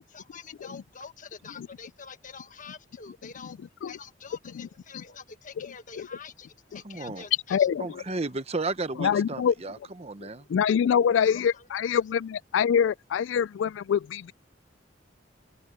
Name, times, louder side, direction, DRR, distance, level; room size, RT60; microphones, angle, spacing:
voice 1, 0.1-3.6 3.9-7.7 11.3-11.8, left 5 dB, 45° left, 1.5 m, -46 dB
voice 2, 6.8-7.2 7.8-10.4, right 3 dB, 35° right, 1.0 m, -33 dB
voice 3, 7.5-8.0 9.0-9.5 10.5-14.3, left 8 dB, 85° left, 0.3 m, -24 dB
head